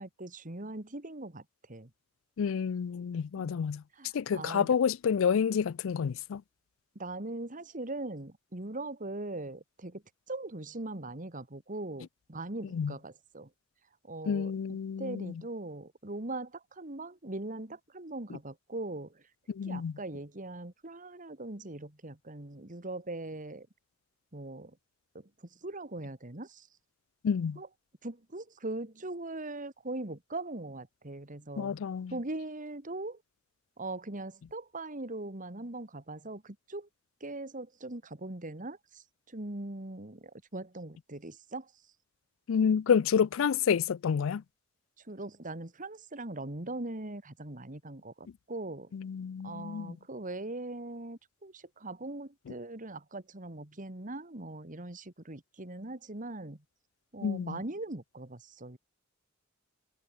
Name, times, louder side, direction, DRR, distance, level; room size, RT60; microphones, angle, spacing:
voice 1, 0.0-1.4 1.7-1.9 3.4-3.6 4.0-4.7 7.0-10.0 10.3-13.5 14.0-14.5 15.0-19.2 19.7-23.7 24.3-24.8 25.1-25.2 25.6-26.7 27.6-27.7 28.0-31.8 32.1-33.2 33.8-36.9 37.2-41.7 45.1-48.9 49.4-56.6 57.1-58.8, right 2 dB, 40° right, 2.4 m, -40 dB
voice 2, 2.4-3.8 4.1-6.4 12.7-12.9 14.3-15.4 19.5-19.9 27.2-27.6 31.6-32.2 42.5-44.4 48.9-49.9 57.2-57.6, left 7 dB, 70° left, 0.4 m, -29 dB
head